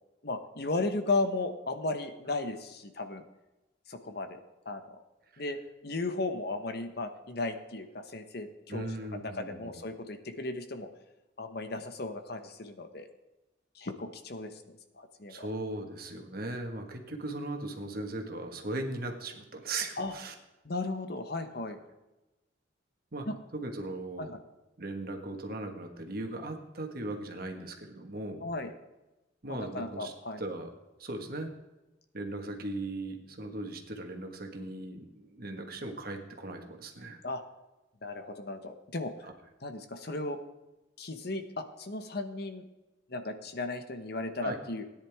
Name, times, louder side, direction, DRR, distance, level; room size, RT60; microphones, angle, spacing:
voice 1, 0.2-3.2 3.9-4.4 4.6-4.8 5.4-5.6 5.8-10.9 11.4-13.1 13.7-14.6 14.9-15.5 20.0-20.1 20.6-21.8 23.3-23.4 24.2-24.4 28.4-28.7 29.5-30.4 37.2-37.4 38.0-39.3 39.6-40.4 41.0-42.6 43.1-44.9, left 2 dB, 55° left, 8 dB, 1.1 m, -35 dB
voice 2, 8.7-9.7 15.3-20.3 23.1-23.3 23.5-24.3 24.8-28.5 29.4-30.1 30.4-30.7 31.0-31.5 32.1-37.2 39.2-39.3 44.4-44.6, right 2 dB, 50° right, 3 dB, 1.6 m, -38 dB
17.0 x 10.0 x 3.6 m, 1.0 s
head